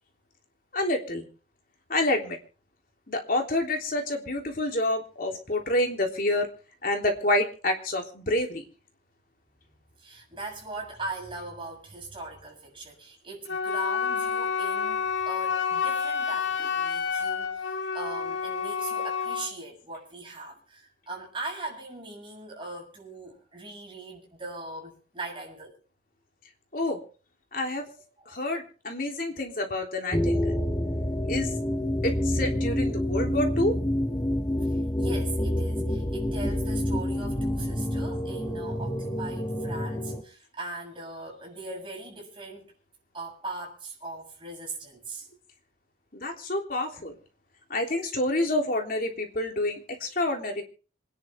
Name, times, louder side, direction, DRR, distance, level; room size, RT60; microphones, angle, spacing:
voice 1, 0.7-1.3 1.9-2.4 3.1-6.5 6.8-8.6 16.6-16.7 26.7-27.0 27.5-27.9 28.3-30.6 31.3-31.5 32.0-33.8 46.1-47.2 47.7-50.6, left 1 dB, 50° left, 3.5 m, -28 dB
voice 2, 10.0-25.8 28.2-28.4 34.6-42.7 43.1-45.3, right 2 dB, 25° right, 7.3 m, -40 dB
Wind instrument woodwind instrument, 13.5-19.5, left 6 dB, 85° left, 2.1 m, -29 dB
sound 1, 30.1-40.2, left 1 dB, 20° left, 1.6 m, -28 dB
26.5 x 10.5 x 3.7 m
head